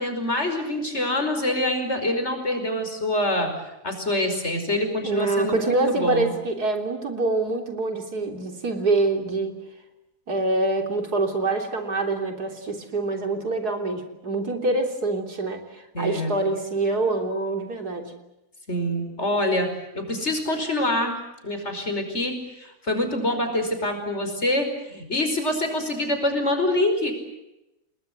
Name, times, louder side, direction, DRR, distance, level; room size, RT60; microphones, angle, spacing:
voice 1, 0.0-3.5 3.8-6.4 15.9-16.4 18.7-19.7 19.9-21.2 21.4-27.1, left 1 dB, 45° left, 6 dB, 5.5 m, -25 dB
voice 2, 5.0-9.6 10.3-18.1, right 2 dB, 90° right, 4 dB, 3.9 m, -25 dB
29.5 x 20.5 x 7.9 m, 0.91 s
omnidirectional pair, 1.6 m